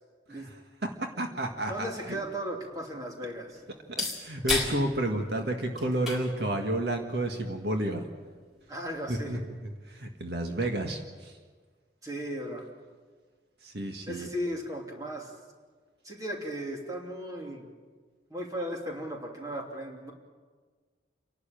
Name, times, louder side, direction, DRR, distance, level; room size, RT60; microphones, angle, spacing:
voice 1, 1.0-2.2 4.0-8.1 9.1-11.4 13.6-14.3, right 1 dB, 65° right, 3 dB, 1.7 m, -31 dB
voice 2, 1.7-3.6 8.7-9.4 12.0-12.6 14.1-15.3 16.0-17.7 18.3-20.1, equal, 20° right, 0 dB, 3.0 m, -36 dB
sound 1, 2.0-9.5, left 2 dB, ahead, 4.1 m, -38 dB
29.5 x 12.0 x 9.0 m, 1.5 s
head